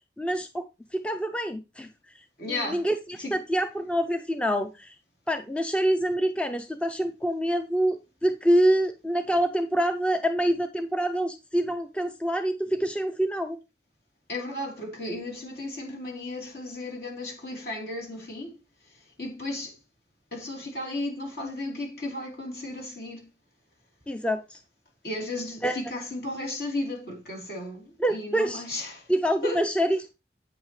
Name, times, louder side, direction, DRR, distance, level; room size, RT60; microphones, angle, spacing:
voice 1, 0.2-0.6 0.9-1.9 2.5-4.9 5.3-13.6 24.1-24.6 25.6-25.8 28.0-28.6 29.1-30.1, right 1 dB, 5° left, 0.4 m, -26 dB
voice 2, 2.4-2.9 3.2-3.3 14.3-18.6 18.9-19.8 20.3-23.2 25.0-29.1 29.4-29.6, left 2 dB, 60° left, 3.5 m, -34 dB
8.8 x 7.6 x 3.2 m
head